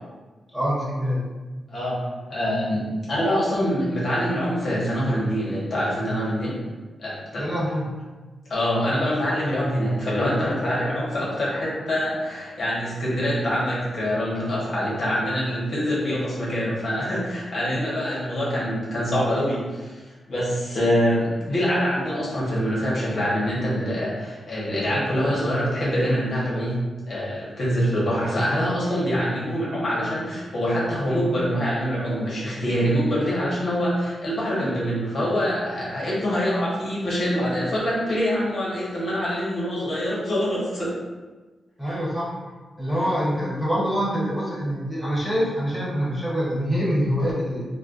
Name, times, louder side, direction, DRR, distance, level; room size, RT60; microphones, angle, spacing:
voice 1, 0.5-1.3 7.3-7.9 41.8-42.3 42.8-47.7, equal, 5° right, -7 dB, 1.4 m, -25 dB
voice 2, 2.3-6.6 7.0-7.4 8.5-20.0 20.3-26.8 27.1-40.9 41.8-42.0, equal, 60° left, -7 dB, 1.2 m, -25 dB
4.2 x 2.2 x 2.6 m, 1.3 s
cardioid pair, 90°, 0 cm